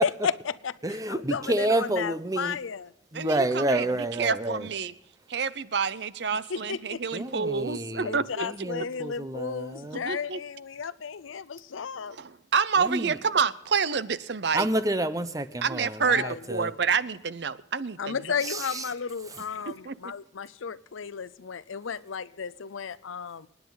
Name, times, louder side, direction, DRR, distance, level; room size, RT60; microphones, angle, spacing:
voice 1, 0.0-0.7 1.1-2.9 3.6-3.9 6.3-7.2 8.0-12.2 16.0-16.4 18.0-23.5, left 6 dB, 90° left, 0.6 m, -33 dB
voice 2, 0.8-2.6 3.1-4.7 7.1-10.0 12.8-13.2 14.5-16.7 18.4-18.8, right 1 dB, 20° right, 0.8 m, -29 dB
voice 3, 3.1-3.9 4.2-4.9 5.3-8.4 9.9-10.4 12.1-14.7 15.6-16.2 16.5-18.2 19.8-19.9, right 6 dB, 60° right, 0.6 m, -28 dB
27.5 x 9.6 x 4.0 m
head